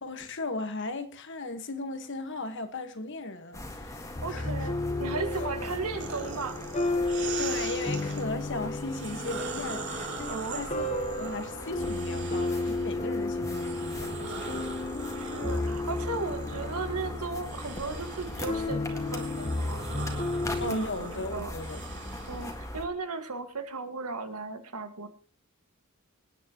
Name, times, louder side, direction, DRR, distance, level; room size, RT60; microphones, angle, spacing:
voice 1, 0.0-4.7 7.4-10.9 11.2-14.6 20.6-21.8, left 2 dB, 55° left, 1.5 m, -37 dB
sound 1, 3.5-22.9, left 1 dB, 15° left, 1.7 m, -41 dB
sound 2, 4.2-20.7, left 2 dB, 35° left, 1.1 m, -33 dB
voice 2, 4.2-6.6 10.3-10.6 15.1-20.9 21.3-21.5 22.3-25.1, right 3 dB, 90° right, 1.9 m, -36 dB
sound 3, 6.0-8.2 8.8-12.9 13.4-22.5, right 5 dB, 55° right, 3.2 m, -41 dB
25.5 x 9.7 x 3.0 m
head